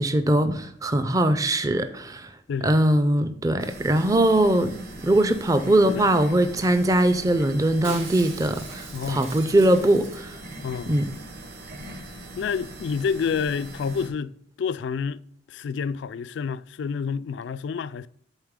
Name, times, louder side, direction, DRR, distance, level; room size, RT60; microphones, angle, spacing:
voice 1, 0.0-2.3 2.6-10.4 10.9-11.1, right 1 dB, 20° right, 0.4 m, -21 dB
sound 1, 3.6-14.1, right 1 dB, 55° right, 1.3 m, -41 dB
Shatter, 7.8-10.6 10.9-11.0 11.1-11.6 11.8-11.9, right 3 dB, 85° right, 2.4 m, -41 dB
voice 2, 10.6-10.9 12.4-15.2 15.5-18.1, left 6 dB, 65° left, 0.3 m, -29 dB
8.0 x 4.0 x 3.6 m
head